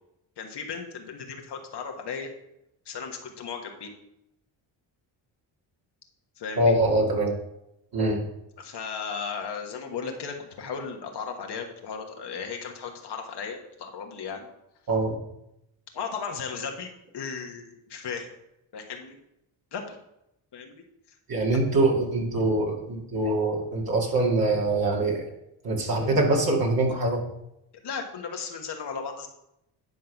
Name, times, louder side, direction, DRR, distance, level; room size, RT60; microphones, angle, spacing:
voice 1, 0.4-2.3 2.8-3.9 6.4-6.7 8.6-14.5 15.9-18.3 18.7-19.2 19.7-20.0 20.5-20.8 27.8-29.3, left 6 dB, 60° left, 3 dB, 1.5 m, -36 dB
voice 2, 6.6-7.4 7.9-8.2 14.9-15.2 21.3-25.2 25.6-27.2, right 2 dB, 50° right, -1 dB, 2.4 m, -24 dB
10.5 x 3.7 x 5.9 m, 0.83 s
supercardioid pair, 65°, 46 cm